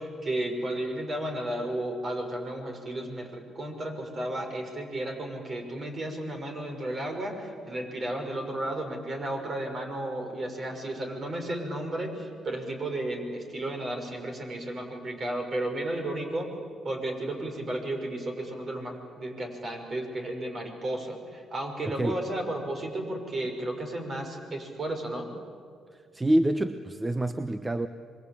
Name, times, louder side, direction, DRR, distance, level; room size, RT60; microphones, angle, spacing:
voice 1, 0.0-16.5 16.8-25.3, right 1 dB, 40° right, 4 dB, 5.9 m, -33 dB
voice 2, 25.9-27.9, right 1 dB, 15° right, 10 dB, 1.0 m, -27 dB
26.5 x 23.5 x 8.7 m, 2.2 s
cardioid pair, 90°, 0 cm